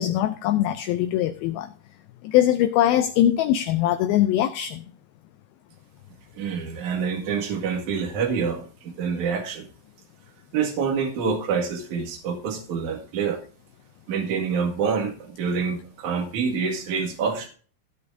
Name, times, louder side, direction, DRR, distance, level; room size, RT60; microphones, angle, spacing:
voice 1, 0.0-1.7 2.2-4.8, left 12 dB, 90° left, 2.1 m, -22 dB
voice 2, 6.4-9.7 10.5-13.4 14.1-17.5, right 6 dB, 50° right, 2.9 m, -27 dB
16.5 x 8.5 x 2.6 m
omnidirectional pair, 5.0 m